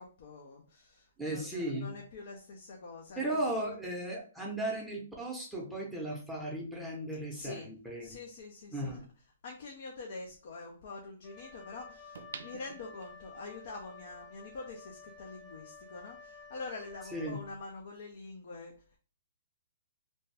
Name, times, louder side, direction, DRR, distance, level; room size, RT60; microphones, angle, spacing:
voice 1, 0.0-3.2 7.3-7.7 8.0-8.9 9.4-12.1 12.4-18.7, left 3 dB, 60° left, 1 dB, 0.6 m, -45 dB
voice 2, 1.2-1.9 3.2-8.2 8.7-9.0 17.0-17.4, right 1 dB, ahead, -3 dB, 0.7 m, -36 dB
sound 1, 8.5-8.6 12.1-13.5 14.0-14.1, right 5 dB, 80° right, 0.3 m, -47 dB
Wind instrument woodwind instrument, 11.2-17.8, left 4 dB, 15° left, 0.4 m, -52 dB
2.6 x 2.2 x 3.3 m, 0.38 s
hypercardioid pair, 145°, 0 cm